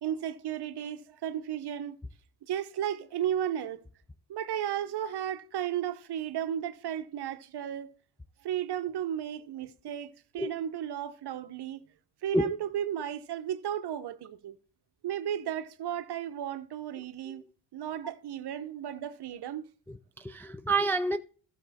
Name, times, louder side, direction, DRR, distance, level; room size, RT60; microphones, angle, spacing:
voice 1, 0.0-1.9 2.5-3.8 4.3-7.9 8.4-11.8 12.2-14.6 15.0-17.4 17.7-19.7, right 10 dB, 55° right, 0.9 m, -34 dB
voice 2, 19.9-21.2, right 2 dB, 5° left, 0.4 m, -28 dB
12.5 x 6.8 x 4.2 m
cardioid pair, 80°, 48 cm